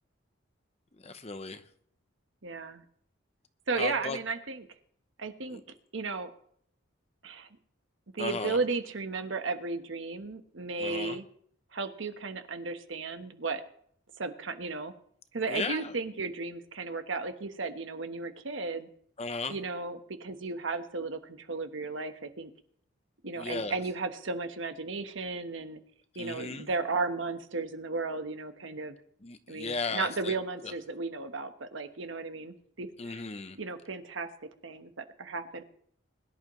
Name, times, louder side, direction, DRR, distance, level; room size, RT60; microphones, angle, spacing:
voice 1, 1.0-1.6 3.7-4.2 5.5-5.6 8.2-8.6 10.8-11.2 15.5-15.9 19.2-19.6 23.4-23.8 26.1-26.7 29.2-30.3 30.6-30.7 33.0-33.6, left 3 dB, 30° left, 9 dB, 0.9 m, -35 dB
voice 2, 2.4-2.8 3.7-4.7 5.2-5.6 5.9-6.3 7.2-7.5 8.1-11.3 11.7-13.6 14.2-14.9 15.3-18.9 19.5-22.5 23.2-25.8 26.1-28.9 29.5-33.2 33.6-35.6, right 3 dB, 75° right, 8 dB, 1.2 m, -34 dB
22.0 x 11.0 x 3.1 m, 0.63 s
head